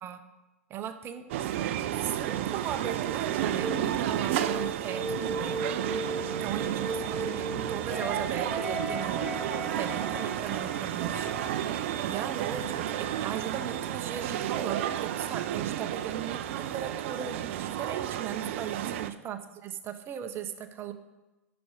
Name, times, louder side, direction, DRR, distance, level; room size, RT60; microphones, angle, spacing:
voice 1, 0.7-1.2 2.0-5.6 6.4-9.3 9.8-11.4 12.1-13.0 13.2-20.9, right 9 dB, 30° right, 9 dB, 1.0 m, -37 dB
sound 1, 1.3-19.1, right 11 dB, 55° right, 0.6 m, -32 dB
sound 2, 3.6-3.9 4.3-8.1, right 1 dB, 15° right, 0.4 m, -36 dB
sound 3, 7.9-12.9, equal, 5° left, 3.5 m, -39 dB
10.0 x 6.1 x 5.1 m, 1.1 s
figure-of-eight pair, 95°, 8 cm